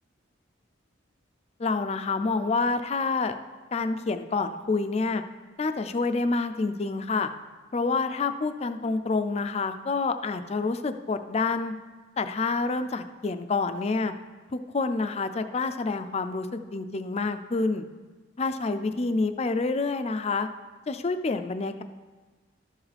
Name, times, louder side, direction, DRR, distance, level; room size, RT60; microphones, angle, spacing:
voice 1, 1.6-3.3 3.7-5.2 5.6-7.3 7.7-11.7 12.2-14.1 14.5-17.9 18.4-20.5 20.9-21.8, left 3 dB, 35° left, 9 dB, 0.4 m, -28 dB
12.5 x 7.2 x 3.3 m, 1.3 s
head